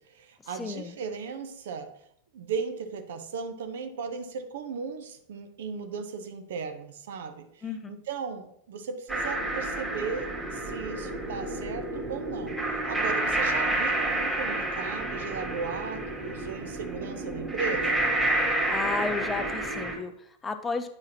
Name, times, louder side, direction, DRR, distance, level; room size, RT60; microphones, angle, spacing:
voice 1, 0.0-1.9 2.3-12.6 12.9-18.0, right 5 dB, 60° right, 8 dB, 0.7 m, -36 dB
voice 2, 0.5-0.9 7.6-7.9 18.7-20.9, left 4 dB, 15° left, 9 dB, 0.5 m, -33 dB
sound 1, 9.1-19.9, right 1 dB, 15° right, 2.0 m, -29 dB
9.6 x 4.8 x 2.8 m, 0.72 s
figure-of-eight pair, 90°, 0 cm